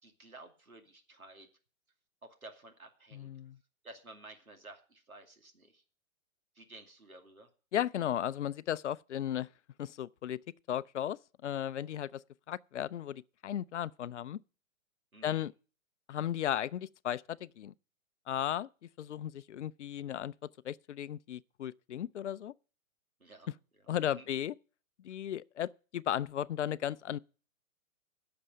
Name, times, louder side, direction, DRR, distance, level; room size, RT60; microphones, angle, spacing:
voice 1, 0.0-1.5 2.2-3.3 3.8-5.8 6.5-7.5 15.1-15.4 23.2-23.5 24.1-24.3, right 2 dB, 90° right, 2.5 m, -53 dB
voice 2, 3.1-3.6 7.7-9.5 9.8-10.4 10.7-12.2 12.5-14.4 15.2-15.5 16.1-17.7 18.3-18.7 19.0-22.5 23.9-24.5 25.0-27.2, left 10 dB, 60° left, 0.5 m, -35 dB
11.0 x 6.8 x 7.6 m
figure-of-eight pair, 120°, 41 cm